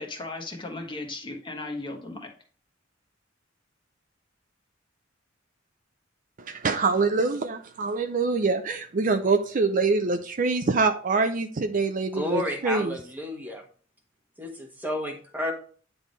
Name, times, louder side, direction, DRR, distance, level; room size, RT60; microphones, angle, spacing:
voice 1, 0.0-2.3, left 2 dB, 25° left, 1.2 m, -36 dB
voice 2, 6.4-12.9, right 4 dB, 45° right, 0.5 m, -25 dB
voice 3, 12.1-13.6 14.4-15.5, left 1 dB, 10° right, 1.2 m, -31 dB
9.1 x 3.5 x 4.0 m
head